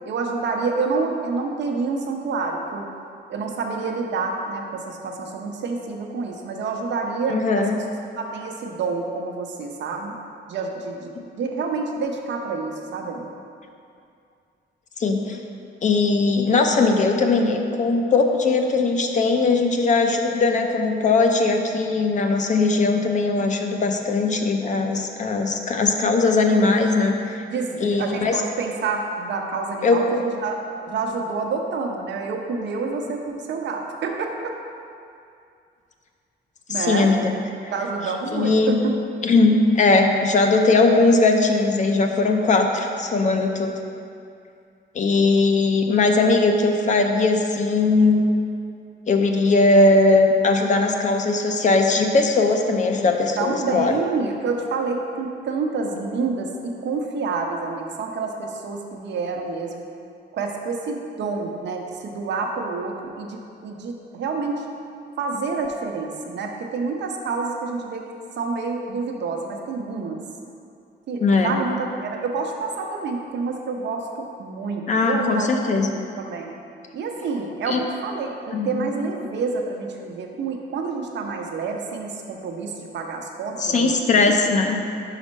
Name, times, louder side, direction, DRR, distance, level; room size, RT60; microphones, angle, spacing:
voice 1, 0.1-2.9 3.3-7.8 8.2-10.1 10.5-13.3 27.5-30.6 30.9-34.5 36.7-37.1 37.7-39.0 53.4-59.8 60.3-64.6 65.2-68.1 68.4-70.2 71.1-76.5 76.9-83.9 84.3-84.4, right 4 dB, 70° right, 2 dB, 0.7 m, -28 dB
voice 2, 7.3-7.8 15.0-15.4 15.8-27.4 27.8-28.4 29.8-30.2 36.7-37.3 38.3-38.7 39.2-43.7 44.9-48.3 49.1-53.9 71.2-71.6 74.9-75.9 77.7-77.8 78.5-78.9 83.6-84.8, left 3 dB, 40° left, 4 dB, 0.5 m, -19 dB
5.2 x 4.9 x 5.2 m, 2.4 s
wide cardioid pair, 165°, 19 cm